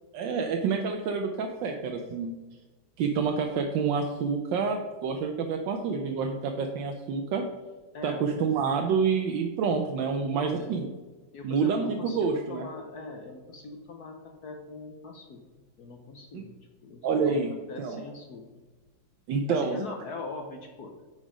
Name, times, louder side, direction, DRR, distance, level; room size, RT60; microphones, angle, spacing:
voice 1, 0.1-2.3 3.0-7.4 8.0-10.9 11.4-12.7 16.3-16.4 17.0-18.0 19.3-19.8, right 5 dB, 80° right, 3 dB, 1.4 m, -28 dB
voice 2, 7.9-8.2 10.3-10.7 11.3-15.4 15.8-17.4 17.7-18.5 19.5-20.9, left 3 dB, 60° left, 3 dB, 1.2 m, -41 dB
9.4 x 5.0 x 5.0 m, 1.2 s
omnidirectional pair, 2.1 m